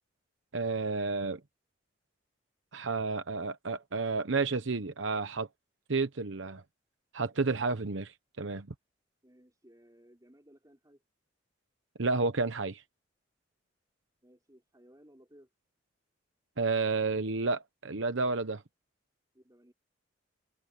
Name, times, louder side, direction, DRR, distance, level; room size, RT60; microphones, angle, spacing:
voice 1, 0.5-1.4 2.7-5.5 5.9-6.6 7.1-8.7 12.0-12.8 16.6-18.6, right 3 dB, 75° right, 1.0 m, -31 dB
voice 2, 9.2-11.0 14.2-15.5 19.3-19.7, equal, 20° right, 5.6 m, -59 dB
head